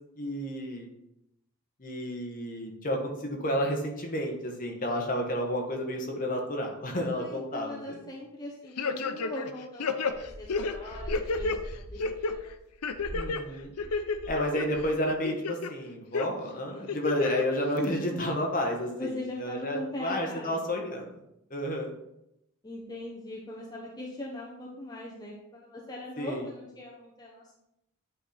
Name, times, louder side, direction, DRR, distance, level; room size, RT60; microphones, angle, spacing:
voice 1, 0.2-0.9 1.8-8.0 13.1-13.7 14.3-19.1 19.4-21.1 21.5-21.9 26.2-26.4, equal, 35° left, 1 dB, 1.3 m, -31 dB
voice 2, 7.0-12.5 17.6-18.3 18.9-20.6 22.6-27.5, left 1 dB, 20° left, -3 dB, 0.8 m, -40 dB
sound 1, 8.8-9.5 9.8-11.6 12.0-12.3 12.8-13.4 13.8-14.6 15.1-15.7 16.1-16.3 16.9-17.4 17.8-17.9, left 4 dB, 90° left, 0.6 m, -30 dB
sound 2, 10.1-14.4 14.7-15.1, equal, 40° right, 1.0 m, -42 dB
9.2 x 4.3 x 3.9 m, 0.84 s
head